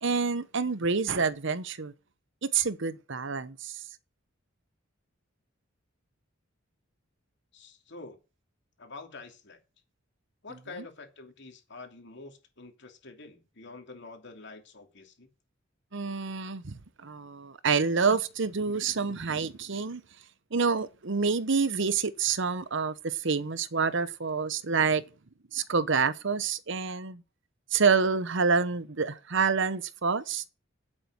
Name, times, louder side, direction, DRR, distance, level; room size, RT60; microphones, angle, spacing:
voice 1, 0.0-1.9 2.4-3.8 15.9-20.0 20.5-25.0 25.5-27.2 27.7-30.5, right 5 dB, 65° right, 0.9 m, -27 dB
voice 2, 7.5-8.2 8.8-9.6 10.4-15.3, left 3 dB, 60° left, 2.8 m, -47 dB
10.0 x 8.1 x 6.1 m
head